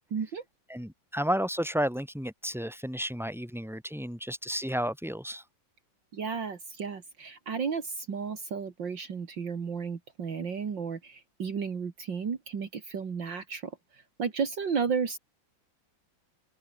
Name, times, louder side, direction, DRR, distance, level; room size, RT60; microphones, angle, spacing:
voice 1, 0.1-0.4 6.1-15.2, right 6 dB, 65° right, 2.8 m, -33 dB
voice 2, 0.7-5.4, equal, ahead, 7.4 m, -32 dB
omnidirectional pair, 2.2 m